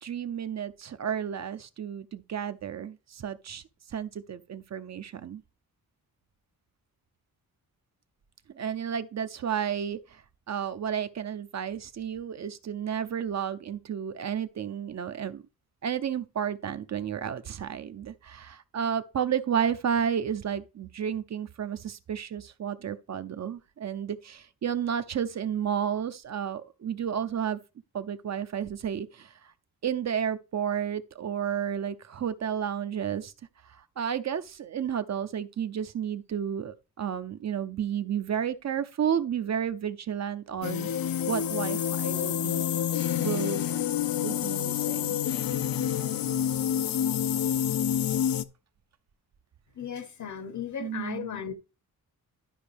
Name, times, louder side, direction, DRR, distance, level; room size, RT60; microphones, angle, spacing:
voice 1, 0.0-3.6 3.9-5.4 8.5-10.2 10.5-15.4 15.8-27.6 27.9-29.5 29.8-33.3 34.0-40.9 41.3-42.6 43.2-43.6 44.2-45.2 50.8-51.3, right 8 dB, 50° right, 0.6 m, -32 dB
sound 1, 40.6-48.4, left 9 dB, 75° left, 0.6 m, -28 dB
voice 2, 49.7-51.5, left 8 dB, 55° left, 0.9 m, -36 dB
12.0 x 5.1 x 3.4 m
wide cardioid pair, 155°, 35 cm